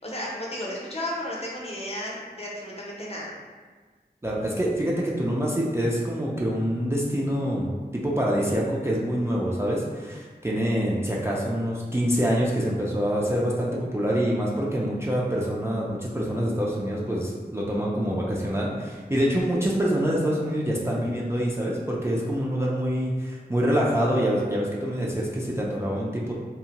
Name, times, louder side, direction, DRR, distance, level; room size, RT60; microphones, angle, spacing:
voice 1, 0.0-3.3, left 1 dB, 35° left, -4 dB, 0.6 m, -33 dB
voice 2, 4.2-26.3, equal, 15° right, -5 dB, 0.4 m, -26 dB
2.7 x 2.1 x 2.8 m, 1.4 s
wide cardioid pair, 60°, 17 cm